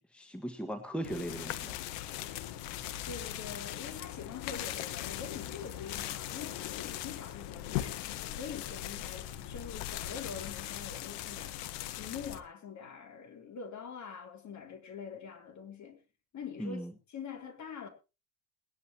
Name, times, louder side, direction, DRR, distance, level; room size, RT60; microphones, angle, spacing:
voice 1, 0.0-1.8 16.6-16.9, equal, ahead, 1.7 m, -38 dB
sound 1, 1.0-12.4, left 13 dB, 70° left, 1.5 m, -39 dB
voice 2, 3.1-8.1 8.4-11.6 11.9-16.0 16.3-17.9, left 6 dB, 40° left, 3.7 m, -44 dB
21.5 x 11.0 x 3.0 m
supercardioid pair, 110°, 45 cm